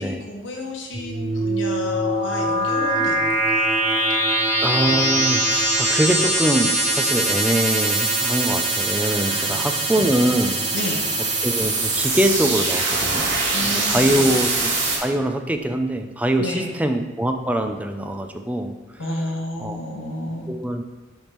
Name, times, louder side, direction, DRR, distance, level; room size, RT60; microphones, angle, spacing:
voice 1, 0.0-4.5 9.2-10.0 10.7-11.1 13.5-14.3 16.4-16.8 19.0-20.5, left 1 dB, 75° left, 1 dB, 1.0 m, -32 dB
sound 1, 0.9-15.0, right 2 dB, 85° right, 1.8 m, -22 dB
voice 2, 4.6-10.6 11.4-13.3 13.6-14.7 15.0-18.7 19.6-19.8 20.5-20.8, right 1 dB, 10° right, 5 dB, 0.4 m, -23 dB
10.5 x 3.5 x 3.0 m, 1.2 s
head